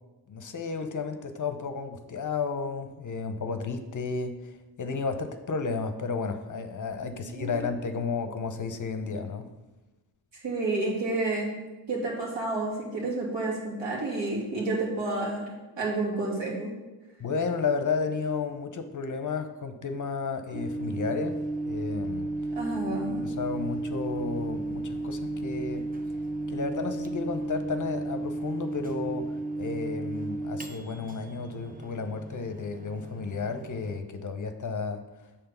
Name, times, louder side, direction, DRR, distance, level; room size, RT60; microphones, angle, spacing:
voice 1, 0.3-9.5 17.2-21.4 21.6-22.3 23.2-25.9 26.5-29.3 29.6-35.0, left 4 dB, 40° left, 8 dB, 0.7 m, -32 dB
voice 2, 7.0-7.6 10.3-11.6 11.9-15.4 15.8-16.7 22.6-23.2, right 2 dB, 70° right, -3 dB, 2.3 m, -30 dB
Microwave oven, 20.5-34.0, right 2 dB, 20° right, 0.6 m, -34 dB
6.7 x 3.7 x 5.6 m, 1.1 s
supercardioid pair, 55°, 46 cm